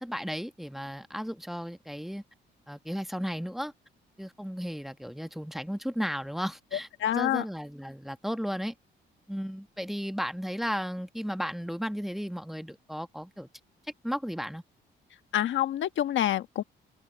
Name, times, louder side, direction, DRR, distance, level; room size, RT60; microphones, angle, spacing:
voice 1, 0.0-2.2 2.7-3.7 4.2-6.9 7.1-8.7 9.3-13.5 14.0-14.6, equal, ahead, 1.4 m, -34 dB
voice 2, 6.7-7.4 15.3-16.6, left 12 dB, 75° left, 1.3 m, -27 dB
open air
cardioid pair, 90°, 20 cm